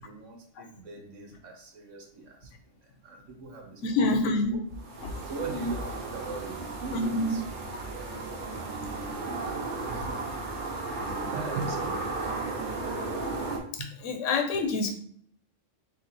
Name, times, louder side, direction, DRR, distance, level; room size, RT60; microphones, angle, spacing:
voice 1, 0.0-2.5 2.8-3.8 4.2-4.6 5.2-7.4 7.9-10.1 10.9-12.2 13.8-13.9, right 3 dB, 80° right, 1 dB, 1.1 m, -40 dB
voice 2, 3.8-4.6 5.0-5.1 6.9-7.3 13.7-14.9, left 2 dB, 80° left, 4 dB, 1.0 m, -27 dB
sound 1, 4.8-13.6, right 3 dB, 45° right, 0.8 m, -34 dB
3.3 x 3.0 x 4.0 m, 0.64 s
omnidirectional pair, 1.3 m